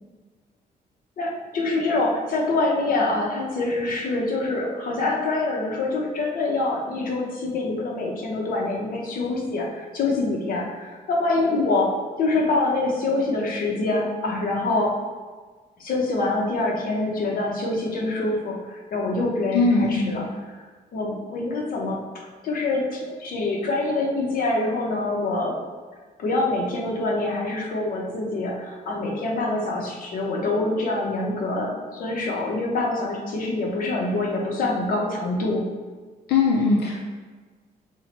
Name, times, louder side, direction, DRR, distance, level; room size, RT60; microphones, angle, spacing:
voice 1, 1.2-15.0 15.8-20.3 20.9-22.0 22.4-25.6 26.2-35.7, left 2 dB, 60° left, -2 dB, 0.9 m, -25 dB
voice 2, 19.5-20.2 36.3-37.0, left 3 dB, 85° left, -2 dB, 0.5 m, -20 dB
5.5 x 2.2 x 4.2 m, 1.4 s
cardioid pair, 170°, 16 cm